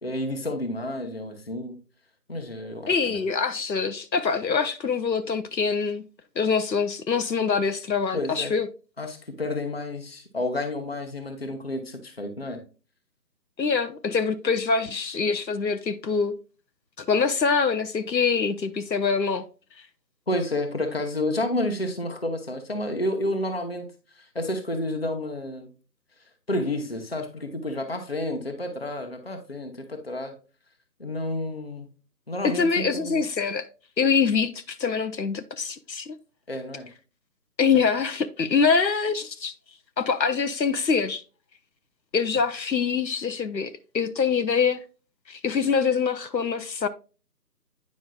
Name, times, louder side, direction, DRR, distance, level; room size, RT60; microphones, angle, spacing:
voice 1, 0.0-1.8 2.3-3.2 8.1-8.6 9.0-12.6 20.3-23.9 24.1-25.7 26.5-30.4 31.0-31.9 32.3-33.2 36.5-36.9, left 1 dB, 35° left, 0.9 m, -30 dB
voice 2, 2.9-6.0 6.4-8.7 13.6-16.3 17.0-19.5 32.4-33.7 34.0-36.2 37.6-39.5 40.0-41.2 42.1-44.8 45.3-46.9, left 5 dB, 90° left, 0.8 m, -24 dB
9.4 x 5.2 x 2.2 m
figure-of-eight pair, 160°, 50 cm